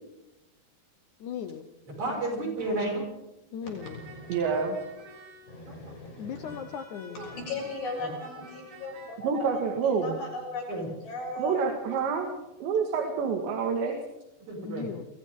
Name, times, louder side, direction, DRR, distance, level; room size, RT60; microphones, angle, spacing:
voice 1, 1.2-1.7 3.5-4.0 6.2-7.3 14.6-15.0, left 7 dB, 90° left, 8 dB, 1.7 m, -37 dB
voice 2, 1.9-3.1 4.4-4.6 5.6-5.9 7.1-7.4 8.0-8.1 10.7-10.9 14.5-14.9, right 2 dB, 40° right, -1 dB, 7.6 m, -33 dB
voice 3, 3.6-4.6 5.5-6.6 7.1-10.7 11.0-11.7, left 2 dB, 60° left, -1 dB, 8.9 m, -38 dB
sound 1, 3.8-5.8 6.4-9.2, right 2 dB, 60° right, 5.9 m, -50 dB
voice 4, 4.3-4.8 9.2-10.2 11.4-12.3 12.6-13.9, right 5 dB, 85° right, 2 dB, 4.2 m, -27 dB
29.5 x 23.5 x 3.8 m, 0.94 s
omnidirectional pair, 5.0 m